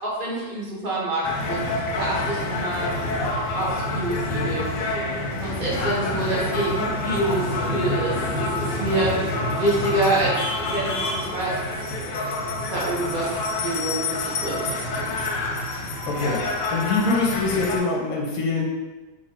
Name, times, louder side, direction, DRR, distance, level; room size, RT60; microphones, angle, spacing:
voice 1, 0.0-3.0 3.5-4.6 5.4-11.5 12.0-13.3 13.6-14.9, right 1 dB, 50° right, -5 dB, 0.6 m, -27 dB
sound 1, 1.2-17.8, left 2 dB, 90° left, 1.4 m, -27 dB
voice 2, 16.1-16.4 16.7-18.7, left 3 dB, 65° left, -1 dB, 0.9 m, -24 dB
3.1 x 2.6 x 4.2 m, 1.2 s
omnidirectional pair, 2.0 m